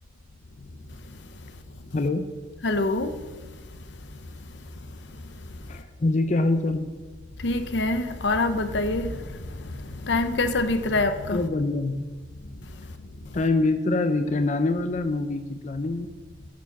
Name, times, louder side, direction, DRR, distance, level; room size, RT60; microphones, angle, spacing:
voice 1, 1.9-2.3 5.7-6.9 11.3-12.1 13.3-16.1, left 2 dB, 40° left, 0.5 m, -25 dB
voice 2, 2.6-3.2 7.4-11.5, left 2 dB, 75° left, 0.8 m, -25 dB
10.0 x 7.1 x 6.0 m
head